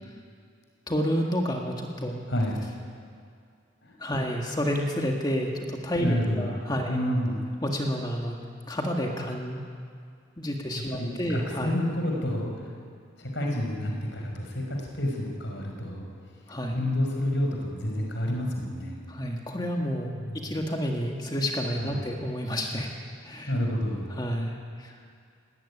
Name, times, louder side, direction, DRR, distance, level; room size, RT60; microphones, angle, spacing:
voice 1, 0.9-2.2 4.0-7.0 7.6-8.4 8.7-9.6 10.4-11.7 16.5-16.8 19.1-22.9 23.2-23.5 24.1-25.0, equal, 20° left, 1 dB, 1.8 m, -30 dB
voice 2, 2.3-2.6 3.8-3.9 6.0-6.5 6.9-7.4 10.7-12.7 13.2-16.0 16.7-19.0 20.1-20.5 21.8-22.0 23.5-24.1, left 1 dB, 65° left, 0 dB, 5.1 m, -29 dB
18.5 x 18.0 x 9.9 m, 2.3 s
head